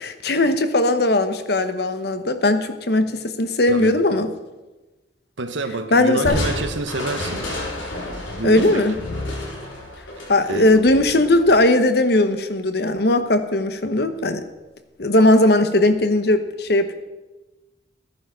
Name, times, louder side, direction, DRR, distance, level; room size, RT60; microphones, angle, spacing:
voice 1, 0.0-4.3 5.9-6.4 8.4-9.0 10.3-14.4 15.0-16.9, left 1 dB, 55° left, 9 dB, 1.0 m, -18 dB
voice 2, 5.4-7.4 8.3-8.8 10.4-10.8, right 2 dB, 80° right, 9 dB, 1.2 m, -28 dB
Crushing, 6.2-11.6, left 1 dB, 90° left, 4.1 m, -30 dB
14.0 x 9.9 x 6.2 m, 1.1 s
head